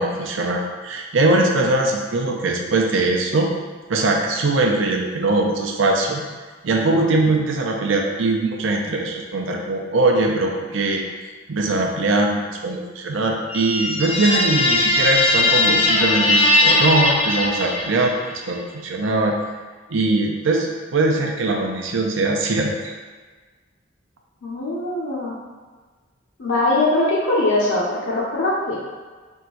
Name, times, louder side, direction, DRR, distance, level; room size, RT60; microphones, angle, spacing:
voice 1, 0.0-3.5 3.9-6.2 6.6-11.0 11.5-19.4 19.9-22.9, right 2 dB, 80° right, 1 dB, 0.6 m, -21 dB
sound 1, 13.5-18.2, left 2 dB, 30° left, 0.3 m, -19 dB
voice 2, 24.4-25.3 26.4-28.8, left 2 dB, 80° left, -7 dB, 0.7 m, -21 dB
3.6 x 2.7 x 4.4 m, 1.4 s
head